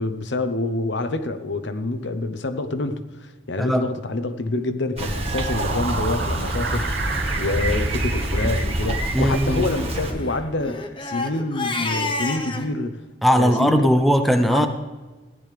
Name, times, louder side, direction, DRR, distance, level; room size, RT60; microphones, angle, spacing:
voice 1, 0.0-13.0 13.3-13.9 14.5-14.7, left 2 dB, 75° left, 0.9 m, -27 dB
Bicycle, 5.0-10.1, right 1 dB, 35° right, 1.4 m, -26 dB
sound 1, 5.0-9.4, right 3 dB, 65° right, 1.1 m, -31 dB
Crying sobbing, 5.9-6.1 6.7-6.8 7.1-7.2 7.5-7.8 8.2-8.5 9.6-12.7, left 3 dB, 25° left, 0.9 m, -30 dB
voice 2, 9.1-9.7 13.2-14.7, equal, ahead, 0.6 m, -19 dB
15.5 x 11.0 x 3.4 m
head